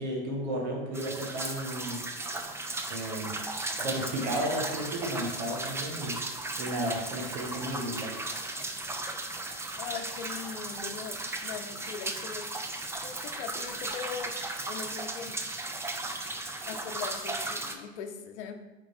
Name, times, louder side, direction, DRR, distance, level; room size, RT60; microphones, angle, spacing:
voice 1, 0.0-2.0 2.9-3.3 3.8-6.2 6.6-8.1, right 1 dB, 75° right, 0 dB, 1.8 m, -33 dB
sound 1, 0.9-17.7, right 2 dB, 10° right, 0.4 m, -36 dB
voice 2, 9.8-15.4 16.7-18.5, left 7 dB, 80° left, 6 dB, 0.8 m, -41 dB
4.8 x 4.5 x 4.4 m, 1.1 s
supercardioid pair, 110°, 33 cm